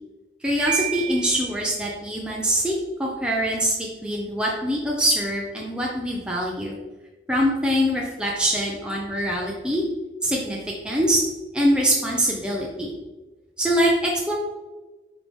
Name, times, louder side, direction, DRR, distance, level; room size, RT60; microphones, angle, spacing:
voice 1, 0.4-2.7 3.0-6.8 7.3-9.8 10.2-11.2 11.5-12.9 13.6-14.4, equal, 5° right, -3 dB, 0.7 m, -23 dB
Piano, 0.7-1.6, right 12 dB, 75° right, 1.1 m, -30 dB
5.8 x 4.7 x 3.5 m, 1.2 s
head